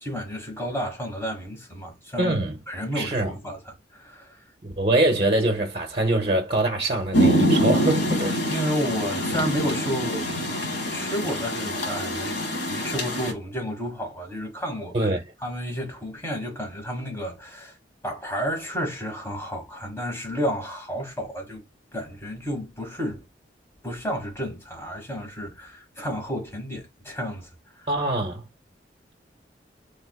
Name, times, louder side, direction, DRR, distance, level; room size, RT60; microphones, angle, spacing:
voice 1, 0.0-2.4 2.7-4.4 8.5-10.4 10.8-15.1 15.4-17.8 18.0-21.6 21.9-23.2 23.8-27.5 27.8-27.9, equal, 15° left, 1.3 m, -31 dB
voice 2, 2.2-2.5 2.9-3.3 4.6-8.6 14.9-15.2 27.9-28.4, right 2 dB, 30° right, 0.7 m, -24 dB
Rain, 7.1-13.3, equal, 75° left, 1.3 m, -25 dB
3.4 x 3.3 x 2.2 m
head